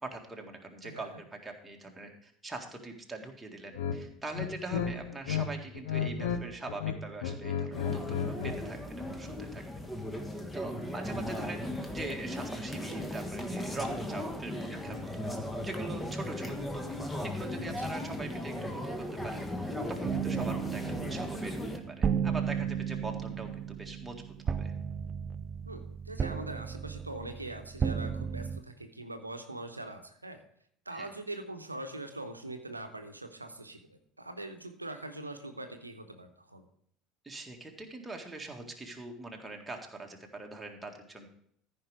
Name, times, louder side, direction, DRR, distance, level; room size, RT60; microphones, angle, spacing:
voice 1, 0.0-9.6 10.5-15.1 15.6-16.8 17.2-24.7 30.9-31.1 37.2-41.3, right 2 dB, 10° right, 1 dB, 1.9 m, -42 dB
sound 1, 3.7-4.0 4.3-5.5 5.7-6.4 6.7-8.6, left 7 dB, 70° left, 0.8 m, -33 dB
sound 2, 7.7-21.8, left 1 dB, 10° left, 1.4 m, -37 dB
sound 3, 20.0-28.6, right 7 dB, 35° right, 0.4 m, -34 dB
voice 2, 25.7-30.4 30.9-36.6, right 2 dB, 90° right, 6 dB, 0.9 m, -42 dB
14.0 x 5.4 x 4.8 m, 0.66 s
figure-of-eight pair, 65°, 0 cm